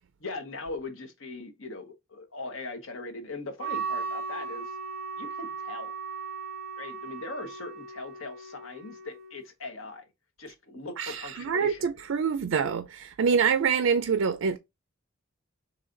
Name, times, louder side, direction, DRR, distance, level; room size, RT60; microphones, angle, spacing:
voice 1, 0.2-4.8 5.2-6.0 6.8-10.0 10.4-11.8, left 3 dB, 90° left, 1.1 m, -40 dB
Wind instrument woodwind instrument, 3.6-9.4, right 5 dB, 50° right, 1.4 m, -37 dB
voice 2, 11.0-14.6, right 6 dB, 80° right, 0.4 m, -26 dB
4.0 x 3.2 x 3.8 m
head